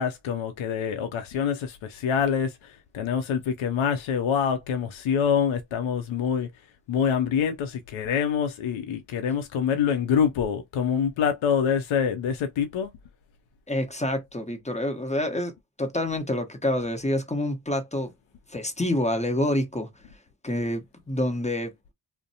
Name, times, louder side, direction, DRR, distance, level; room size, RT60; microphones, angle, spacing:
voice 1, 0.0-6.5 6.9-12.9, left 7 dB, 70° left, 0.6 m, -26 dB
voice 2, 13.7-15.5 15.8-18.1 18.5-19.9 20.4-21.7, left 1 dB, 15° left, 1.0 m, -27 dB
2.5 x 2.1 x 2.7 m
supercardioid pair, 40°, 49 cm